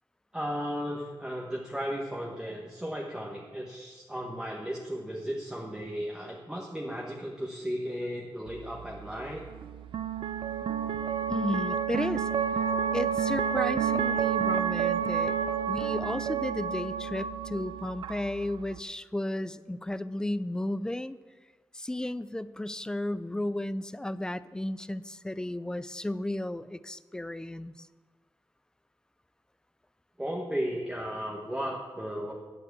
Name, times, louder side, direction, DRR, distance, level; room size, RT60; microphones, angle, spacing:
voice 1, 0.3-9.4 30.2-32.3, equal, 10° right, -3 dB, 1.2 m, -35 dB
sound 1, 8.5-18.8, right 7 dB, 85° right, 0.5 m, -30 dB
voice 2, 11.3-12.3 12.9-15.3 15.7-21.2 21.7-27.8, left 1 dB, 10° left, 16 dB, 0.3 m, -33 dB
11.0 x 7.0 x 8.2 m, 1.4 s
wide cardioid pair, 150°, 8 cm